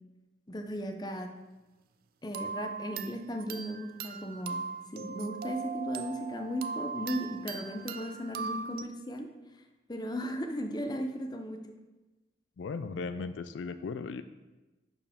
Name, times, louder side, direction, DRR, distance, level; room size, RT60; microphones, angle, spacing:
voice 1, 0.5-1.3 2.2-4.6 4.9-9.3 9.9-11.8, equal, 20° left, 5 dB, 0.6 m, -36 dB
sound 1, 2.3-8.8, right 5 dB, 50° right, 0.3 m, -39 dB
voice 2, 12.6-14.2, left 4 dB, 80° left, 12 dB, 0.4 m, -37 dB
10.5 x 4.6 x 3.6 m, 1.1 s
head